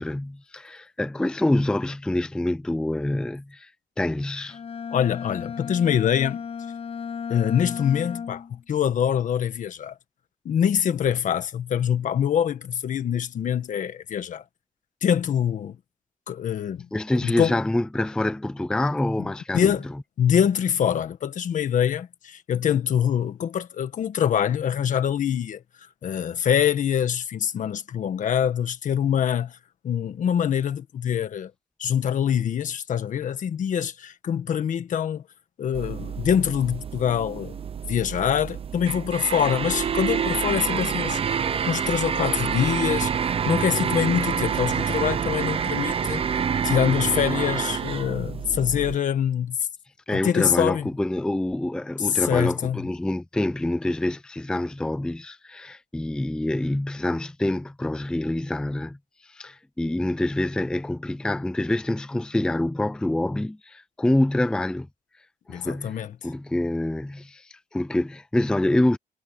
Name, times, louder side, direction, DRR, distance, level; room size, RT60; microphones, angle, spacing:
voice 1, 0.0-3.7 4.0-4.6 16.9-19.7 50.1-59.0 59.2-64.9 65.5-69.0, left 1 dB, 5° left, 0.5 m, -26 dB
Bowed string instrument, 4.5-8.6, left 6 dB, 40° left, 7.4 m, -34 dB
voice 2, 4.9-6.4 7.3-9.9 10.4-14.4 15.0-15.8 16.3-16.9 17.1-17.6 19.2-19.3 19.5-19.8 20.2-25.6 26.0-29.6 29.8-31.5 31.8-35.2 35.6-37.6 37.9-41.2 41.7-49.6 50.1-50.9 52.1-52.8 65.5-66.1, left 9 dB, 60° left, 1.5 m, -24 dB
sound 1, 35.7-49.0, right 7 dB, 40° right, 0.8 m, -27 dB
wide cardioid pair, 170°, 15 cm